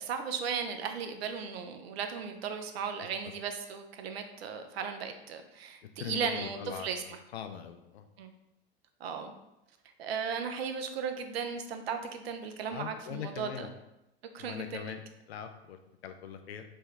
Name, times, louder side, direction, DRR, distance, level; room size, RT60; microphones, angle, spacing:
voice 1, 0.0-7.2 8.2-8.3 9.0-9.3 10.0-13.7 14.3-15.0, right 6 dB, 70° right, 7 dB, 0.5 m, -36 dB
voice 2, 6.0-8.0 12.7-13.7 14.4-15.8 16.0-16.6, left 8 dB, 80° left, 8 dB, 0.5 m, -41 dB
3.4 x 2.2 x 3.1 m, 0.90 s
hypercardioid pair, 85°, 32 cm